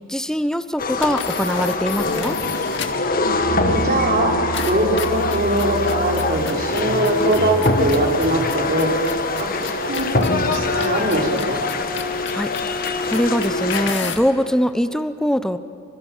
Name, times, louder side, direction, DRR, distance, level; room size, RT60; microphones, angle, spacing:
voice 1, 0.1-2.4 12.3-15.6, equal, 5° left, 12 dB, 0.8 m, -22 dB
sound 1, 0.8-13.9, left 3 dB, 45° left, 1.6 m, -24 dB
sound 2, 0.9-3.1 4.5-14.3, left 5 dB, 60° left, 2.2 m, -33 dB
Musical instrument, 3.2-6.7, right 3 dB, 75° right, 1.8 m, -31 dB
voice 2, 3.5-4.3 4.6-8.9 9.3-11.6, right 1 dB, 45° right, 1 dB, 4.6 m, -21 dB
28.5 x 25.0 x 7.4 m, 2.8 s
head